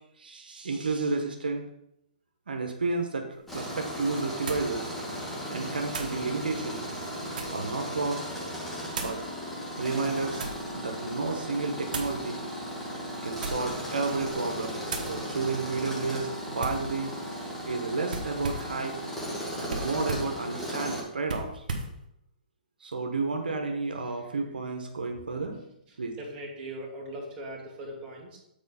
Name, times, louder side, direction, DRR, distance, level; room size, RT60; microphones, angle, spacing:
voice 1, 0.2-1.7 2.5-3.3 3.5-4.9 5.5-6.9 7.5-8.2 9.0-9.2 9.8-12.4 13.2-17.1 17.7-19.0 19.6-21.6 22.8-25.6 26.0-26.1, right 3 dB, 85° right, 3 dB, 1.2 m, -31 dB
sound 1, 3.3-3.4 4.5-4.7 5.9-6.2 6.9-7.7 8.9-9.2 10.0-10.7 11.9-12.2 13.3-13.8 14.2-14.4 14.9-15.2 16.6-16.9 18.1-18.8 19.7-20.3 21.2-21.9, right 3 dB, 70° right, 1.4 m, -36 dB
Tools, 3.5-21.0, equal, 5° left, 2.0 m, -36 dB
voice 2, 26.2-28.4, right 1 dB, 25° right, -3 dB, 2.4 m, -39 dB
7.4 x 4.4 x 5.5 m, 0.80 s
hypercardioid pair, 140°, 5 cm